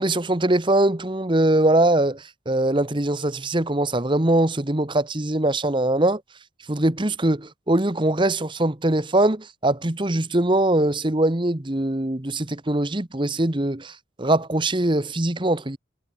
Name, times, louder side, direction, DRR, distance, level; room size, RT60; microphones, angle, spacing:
voice 1, 0.0-6.2 6.7-15.8, right 1 dB, 25° right, 1.3 m, -22 dB
head